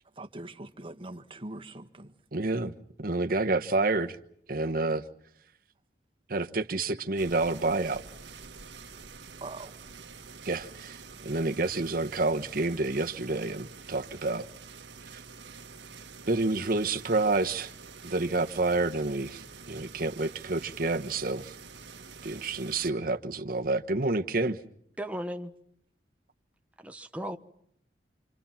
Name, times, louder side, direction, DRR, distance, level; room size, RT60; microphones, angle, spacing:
voice 1, 0.1-2.1 9.4-9.8, right 2 dB, 30° right, 1.5 m, -42 dB
voice 2, 2.3-2.7 3.0-4.2 4.5-5.0 6.3-8.0 10.4-14.5 16.3-17.7 18.0-21.5 22.2-24.6, right 2 dB, 55° right, 1.3 m, -29 dB
sound 1, 7.2-22.9, right 5 dB, 90° right, 1.5 m, -47 dB
voice 3, 25.0-25.5 26.8-27.4, equal, 10° right, 1.2 m, -36 dB
27.5 x 27.5 x 5.9 m
head